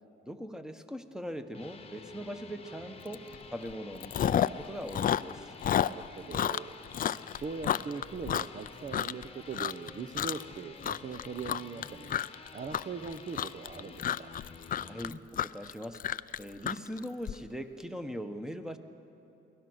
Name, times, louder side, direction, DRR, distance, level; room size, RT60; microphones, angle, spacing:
voice 1, 0.2-3.2 3.5-5.5 14.8-16.0 16.4-18.8, equal, 5° right, 8 dB, 1.3 m, -40 dB
sound 1, 1.3-15.2, left 4 dB, 30° left, 1.2 m, -50 dB
Chewing mastication, 3.1-3.4 3.7-4.6 4.9-9.2 9.5-9.9 10.2-10.5 10.8-17.3, left 10 dB, 45° left, 0.4 m, -31 dB
voice 2, 5.7-6.8 7.3-12.2 12.5-14.4, right 5 dB, 40° right, 7 dB, 0.8 m, -41 dB
24.0 x 16.5 x 6.4 m, 2.9 s
cardioid pair, 90°, 20 cm